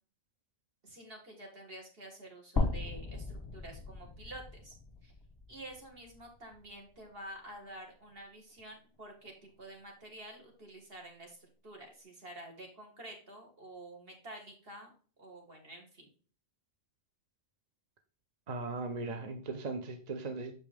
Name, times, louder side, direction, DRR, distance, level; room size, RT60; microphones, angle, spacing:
voice 1, 0.8-4.8 5.0-5.1 5.5-14.9 15.2-16.1, right 1 dB, 65° right, 2 dB, 1.9 m, -49 dB
sound 1, 2.6-6.7 7.1-7.2 8.6-8.7, left 3 dB, 25° left, 0.6 m, -37 dB
voice 2, 18.5-20.5, right 3 dB, 45° right, 6 dB, 0.7 m, -38 dB
6.4 x 5.3 x 3.4 m, 0.40 s
omnidirectional pair, 1.1 m